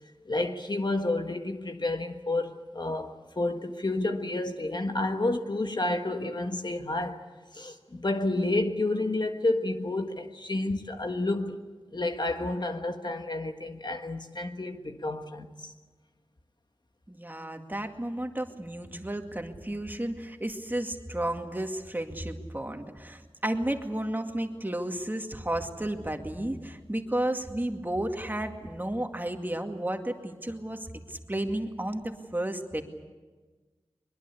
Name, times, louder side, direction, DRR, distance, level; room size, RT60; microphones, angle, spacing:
voice 1, 0.2-7.2 7.5-11.6 11.9-15.7, left 2 dB, 45° left, 1.5 m, -30 dB
voice 2, 17.1-32.8, right 1 dB, 20° right, 2.2 m, -32 dB
22.5 x 22.0 x 8.4 m
wide cardioid pair, 55°, 10 cm